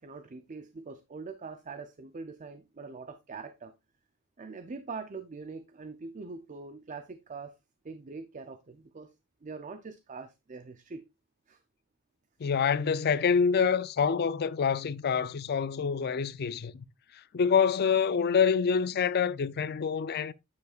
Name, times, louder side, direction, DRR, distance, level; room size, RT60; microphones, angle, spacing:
voice 1, 0.0-3.7 4.4-7.5 7.8-9.1 9.4-11.0 11.5-11.6, right 4 dB, 35° right, 0.5 m, -43 dB
voice 2, 12.4-16.9 17.3-20.3, left 6 dB, 45° left, 0.4 m, -26 dB
9.3 x 7.2 x 2.4 m
head